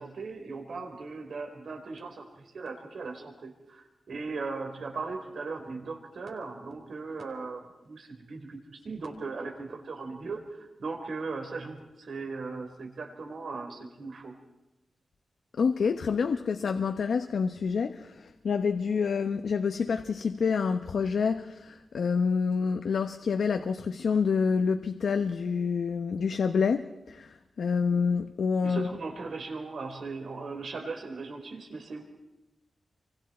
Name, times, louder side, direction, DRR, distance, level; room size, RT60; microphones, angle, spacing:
voice 1, 0.0-14.3 28.6-32.0, right 4 dB, 70° right, 4.3 m, -38 dB
voice 2, 15.6-28.9, left 5 dB, 80° left, 0.9 m, -27 dB
29.5 x 24.5 x 4.4 m
wide cardioid pair, 150°, 0 cm